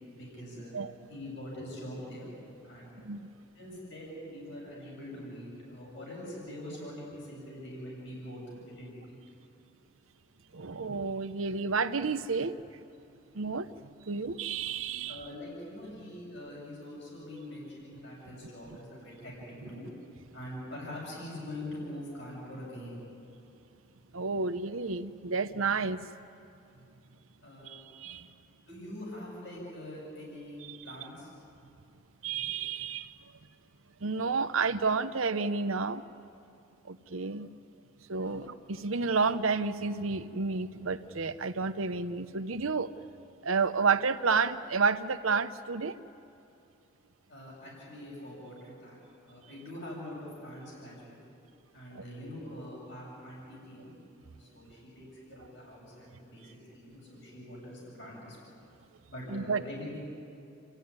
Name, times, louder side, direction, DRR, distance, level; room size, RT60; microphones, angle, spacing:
voice 1, 0.1-0.7 1.1-2.3 2.6-3.1 3.5-9.2 15.1-19.9 20.3-23.0 27.4-27.8 28.7-31.3 38.2-38.4 47.3-51.2 51.7-58.4 59.1-60.0, left 1 dB, 60° left, -4 dB, 7.2 m, -44 dB
voice 2, 10.5-12.5 13.3-13.7 14.1-15.3 18.4-18.5 24.1-26.0 27.6-28.3 30.7-30.8 32.2-33.1 34.0-36.0 36.8-37.5 38.1-42.9 43.4-46.0 51.9-52.0 59.3-59.6, right 4 dB, 85° right, 11 dB, 0.9 m, -30 dB
29.0 x 14.5 x 9.7 m, 2.8 s
head